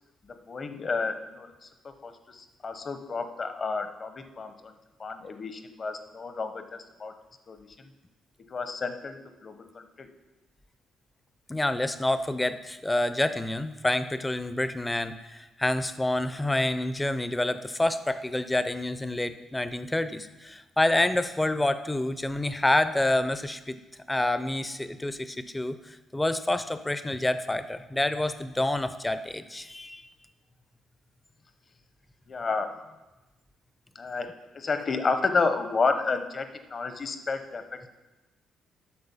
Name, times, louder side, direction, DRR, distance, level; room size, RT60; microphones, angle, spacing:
voice 1, 0.3-7.1 7.5-7.9 8.5-10.1 32.3-32.8 33.9-37.9, left 4 dB, 40° left, 8 dB, 0.9 m, -31 dB
voice 2, 11.5-23.8 24.1-30.1, left 1 dB, 15° left, 12 dB, 0.5 m, -28 dB
8.7 x 6.3 x 5.5 m, 1.1 s
cardioid pair, 90°, 0 cm